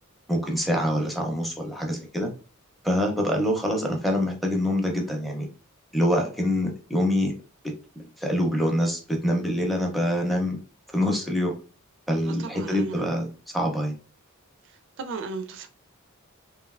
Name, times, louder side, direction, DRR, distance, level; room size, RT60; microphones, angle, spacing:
voice 1, 0.3-2.3 2.8-5.5 5.9-7.3 8.0-10.6 10.9-11.5 12.1-14.0, equal, ahead, 0.6 m, -25 dB
voice 2, 12.3-13.0 14.6-15.7, right 4 dB, 60° right, 0.4 m, -36 dB
3.0 x 2.5 x 2.4 m
head